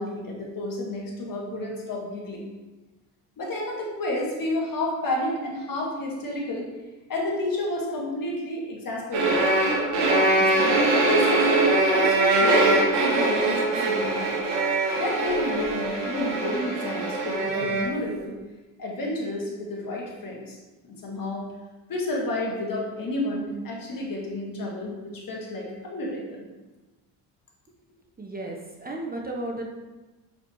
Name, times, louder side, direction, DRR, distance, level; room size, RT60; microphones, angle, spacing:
voice 1, 0.0-2.5 3.4-6.7 7.1-9.5 10.2-14.4 15.0-18.4 18.8-20.6 20.8-21.5 21.9-26.5, left 1 dB, 45° left, -2 dB, 2.1 m, -31 dB
sound 1, 9.1-17.9, right 2 dB, 75° right, 1.7 m, -22 dB
voice 2, 28.2-29.7, right 1 dB, 20° right, 0 dB, 1.1 m, -34 dB
6.6 x 5.2 x 3.2 m, 1.2 s
supercardioid pair, 65°, 45 cm